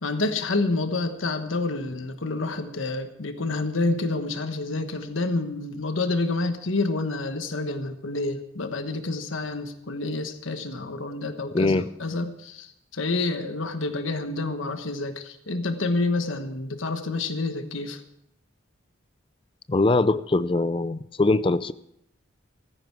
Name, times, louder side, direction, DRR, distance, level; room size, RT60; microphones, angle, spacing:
voice 1, 0.0-11.7 12.0-18.0, left 2 dB, 85° left, 8 dB, 1.3 m, -28 dB
voice 2, 11.5-11.9 19.7-21.7, left 2 dB, 25° left, 15 dB, 0.5 m, -22 dB
15.0 x 14.5 x 4.7 m, 0.74 s
head